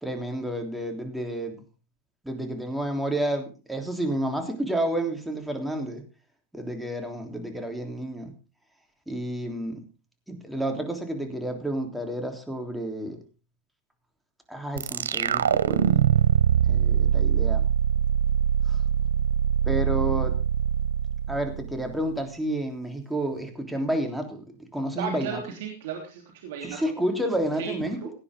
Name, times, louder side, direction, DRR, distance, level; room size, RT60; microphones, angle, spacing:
voice 1, 0.0-1.6 2.2-6.0 6.5-8.3 9.1-9.8 10.3-13.2 14.5-16.0 16.7-17.6 18.7-18.8 19.7-20.3 21.3-24.5 24.7-25.4 26.6-28.0, right 1 dB, 5° right, 3 dB, 3.4 m, -30 dB
sound 1, 14.8-22.0, right 9 dB, 85° right, 0.7 m, -23 dB
voice 2, 24.9-26.8 27.6-27.7 28.0-28.1, right 7 dB, 65° right, 2 dB, 3.2 m, -34 dB
17.5 x 9.7 x 3.7 m, 0.32 s
hypercardioid pair, 105°, 0 cm